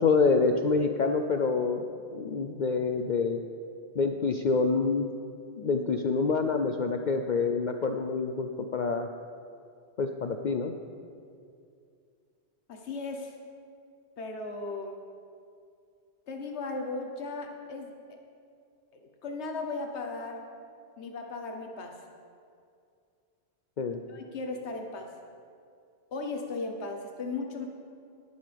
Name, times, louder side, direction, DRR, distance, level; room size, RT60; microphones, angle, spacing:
voice 1, 0.0-1.9 2.1-3.4 4.0-5.1 5.6-9.1 10.0-10.7 23.8-24.0, left 4 dB, 55° left, 5 dB, 0.6 m, -27 dB
voice 2, 12.7-13.4 14.2-15.0 16.3-18.2 19.0-20.4 21.0-22.0 24.1-25.1 26.1-27.7, left 3 dB, 85° left, 3 dB, 1.2 m, -36 dB
19.0 x 9.4 x 3.4 m, 2.4 s
omnidirectional pair, 1.1 m